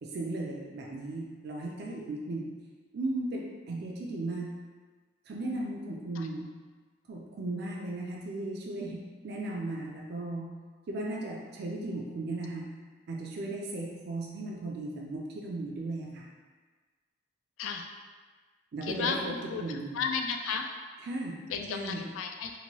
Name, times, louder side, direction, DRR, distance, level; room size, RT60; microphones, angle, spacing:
voice 1, 0.0-2.5 2.9-4.6 5.3-6.5 7.1-10.5 10.9-12.6 13.1-16.3 18.7-19.3 19.6-20.0 21.0-21.4 21.7-22.1, right 2 dB, 55° right, -2 dB, 0.4 m, -36 dB
voice 2, 18.8-19.6 19.9-20.7 21.5-22.5, left 5 dB, 85° left, 4 dB, 0.3 m, -33 dB
2.9 x 2.6 x 2.9 m, 1.4 s
head